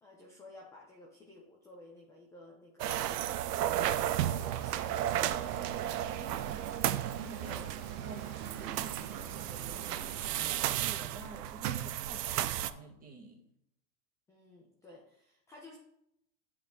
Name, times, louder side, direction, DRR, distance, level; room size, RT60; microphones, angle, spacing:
voice 1, 0.0-3.0 4.2-4.9 7.4-7.7 14.3-15.8, left 2 dB, 5° left, -2 dB, 0.4 m, -53 dB
sound 1, 2.8-12.7, right 12 dB, 90° right, 0.5 m, -34 dB
sound 2, 4.0-10.5, right 7 dB, 40° right, 1.0 m, -47 dB
voice 2, 5.9-7.6 8.0-13.4, right 3 dB, 20° right, 1 dB, 1.2 m, -50 dB
9.2 x 3.7 x 3.6 m, 0.76 s
hypercardioid pair, 125°, 46 cm